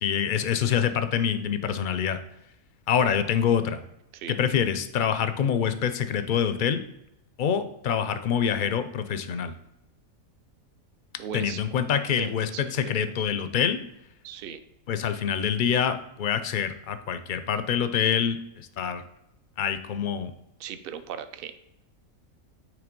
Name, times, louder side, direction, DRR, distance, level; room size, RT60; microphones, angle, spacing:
voice 1, 0.0-2.2 2.9-3.8 4.3-6.8 7.4-9.5 11.3-13.8 14.9-19.0 19.6-20.3, left 8 dB, 60° left, 11 dB, 0.5 m, -26 dB
voice 2, 11.2-11.6 12.2-12.9 14.2-14.6 20.6-21.6, right 8 dB, 55° right, 11 dB, 0.6 m, -38 dB
9.2 x 3.3 x 5.2 m, 0.83 s
omnidirectional pair, 1.5 m